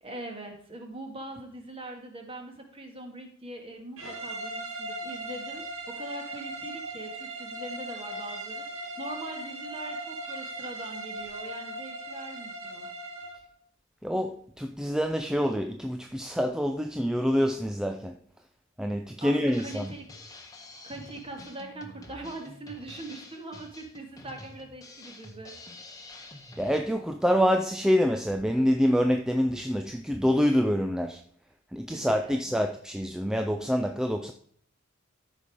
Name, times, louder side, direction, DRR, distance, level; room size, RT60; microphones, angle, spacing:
voice 1, 0.0-12.9 19.2-20.0 20.8-25.5 31.9-32.6, right 2 dB, 25° right, 1.9 m, -42 dB
sound 1, 4.0-13.4, right 1 dB, 75° right, 2.3 m, -38 dB
voice 2, 14.0-18.1 18.8-19.9 26.6-31.2 31.7-34.3, equal, 5° right, 0.4 m, -26 dB
Drum kit, 19.5-26.8, left 2 dB, 15° left, 1.3 m, -48 dB
13.5 x 5.4 x 4.9 m
head